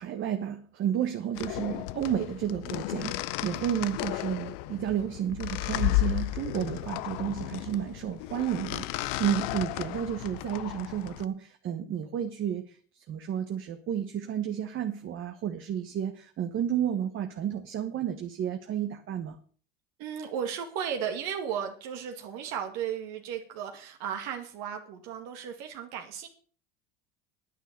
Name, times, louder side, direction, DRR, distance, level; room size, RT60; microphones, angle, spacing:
voice 1, 0.0-19.4, right 9 dB, 45° right, 6 dB, 1.4 m, -32 dB
sound 1, 1.4-11.2, left 17 dB, 75° left, 0.8 m, -33 dB
voice 2, 20.0-26.3, right 8 dB, 65° right, 4 dB, 2.2 m, -35 dB
10.0 x 9.3 x 6.8 m, 0.43 s
supercardioid pair, 105°, 29 cm